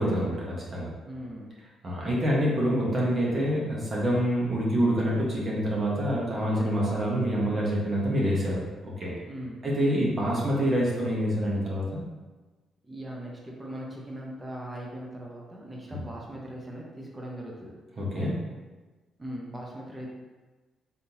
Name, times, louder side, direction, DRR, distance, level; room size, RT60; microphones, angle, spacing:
voice 1, 0.0-0.9 1.8-9.1 9.6-12.0 15.9-16.0 18.0-18.4, equal, 40° right, -5 dB, 1.3 m, -26 dB
voice 2, 1.1-1.5 9.3-9.6 12.8-17.7 19.2-20.1, equal, 20° right, -2 dB, 0.9 m, -39 dB
4.2 x 3.6 x 2.8 m, 1.2 s
cardioid pair, 90°, 0 cm